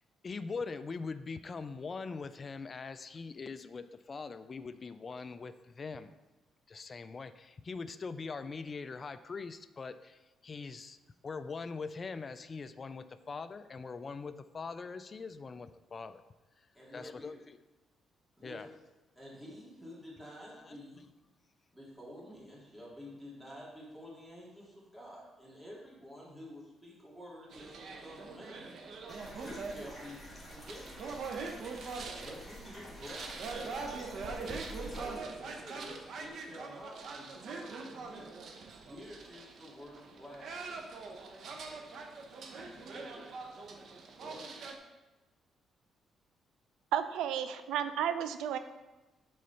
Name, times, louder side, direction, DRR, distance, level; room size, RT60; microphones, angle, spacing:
voice 1, 0.2-6.1 6.7-11.0 11.2-16.2 16.9-17.6 18.4-18.7 20.6-20.8, left 4 dB, 35° left, 12 dB, 0.3 m, -42 dB
voice 2, 16.7-17.4 18.4-18.6 19.2-21.0 21.7-28.7 29.4-31.3 32.2-38.3 38.9-40.9 42.5-43.2 43.8-44.5, equal, 5° right, -6 dB, 2.4 m, -50 dB
sound 1, 27.5-44.7, right 4 dB, 65° right, 0.9 m, -43 dB
sound 2, 29.1-35.2, left 1 dB, 15° left, 2.0 m, -49 dB
voice 3, 46.9-48.6, right 9 dB, 85° right, 11 dB, 0.4 m, -32 dB
6.3 x 3.9 x 5.7 m, 1.1 s
cardioid pair, 90°, 0 cm